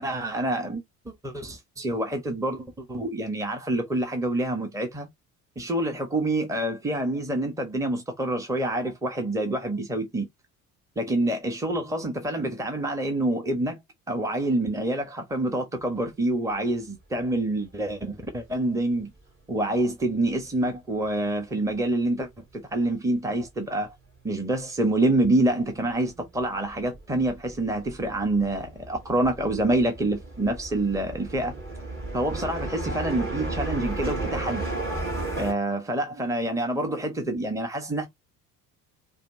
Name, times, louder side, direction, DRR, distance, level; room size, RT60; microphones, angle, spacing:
voice 1, 0.0-5.1 5.6-10.3 11.0-13.8 14.1-19.1 19.5-23.9 24.2-31.5 32.1-34.6 35.3-38.1, right 1 dB, 5° right, 1.3 m, -27 dB
sound 1, 22.7-22.8 22.9-24.1 24.4-35.5, right 2 dB, 25° right, 3.5 m, -34 dB
5.0 x 2.8 x 2.7 m
figure-of-eight pair, 55°, 46 cm